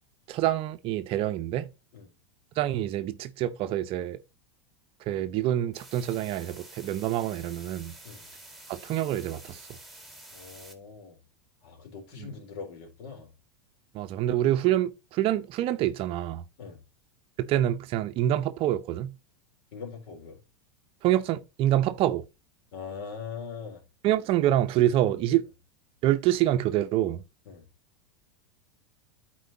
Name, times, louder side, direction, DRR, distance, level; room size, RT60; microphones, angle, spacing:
voice 1, 0.3-1.7 2.6-4.2 5.1-8.0 8.7-9.6 12.2-12.3 13.9-16.4 17.4-19.1 21.0-22.2 24.0-25.5 26.0-27.2, right 13 dB, 40° right, 0.7 m, -26 dB
sound 1, 5.7-10.7, right 1 dB, ahead, 2.0 m, -49 dB
voice 2, 10.3-11.2 11.6-13.3 16.6-16.8 19.7-20.4 22.7-23.8 27.5-27.6, left 6 dB, 55° left, 3.7 m, -41 dB
13.0 x 4.6 x 2.8 m
figure-of-eight pair, 90°, 14 cm